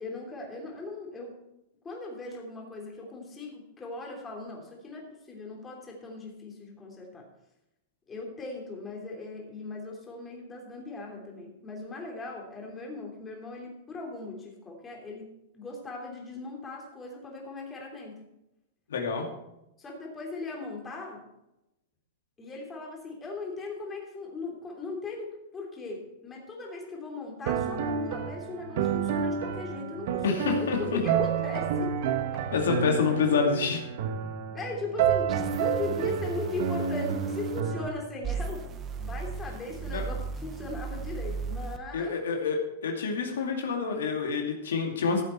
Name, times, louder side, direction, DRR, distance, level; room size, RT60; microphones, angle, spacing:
voice 1, 0.0-1.3 1.8-7.3 8.1-18.2 19.8-21.2 22.4-31.9 34.5-38.6 39.0-42.1, left 3 dB, 15° left, 0 dB, 3.1 m, -38 dB
voice 2, 18.9-19.3 30.2-31.0 32.5-33.8 39.9-40.0 41.9-45.2, left 5 dB, 85° left, 2 dB, 2.3 m, -27 dB
sound 1, 27.5-37.9, right 7 dB, 60° right, 1.3 m, -29 dB
sound 2, 35.3-37.6 38.2-41.8, right 6 dB, 25° right, 1.0 m, -36 dB
14.5 x 7.6 x 4.5 m, 0.89 s
hypercardioid pair, 135°, 0 cm